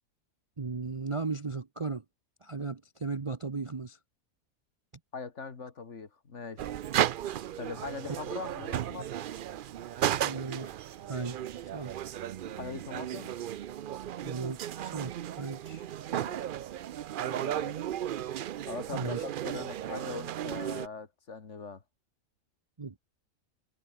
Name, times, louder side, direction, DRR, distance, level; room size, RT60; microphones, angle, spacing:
voice 1, 0.6-2.0 2.4-4.0 10.2-10.7 11.1-11.4 11.7-11.9 14.2-15.8 18.9-19.2 22.8-23.0, right 4 dB, 30° right, 0.7 m, -36 dB
voice 2, 5.1-6.8 7.6-9.1 12.4-13.3 16.1-16.4 17.2-17.8 18.7-21.8, left 4 dB, 55° left, 2.2 m, -41 dB
sound 1, 6.6-20.9, right 11 dB, 90° right, 0.4 m, -35 dB
omnidirectional pair, 1.5 m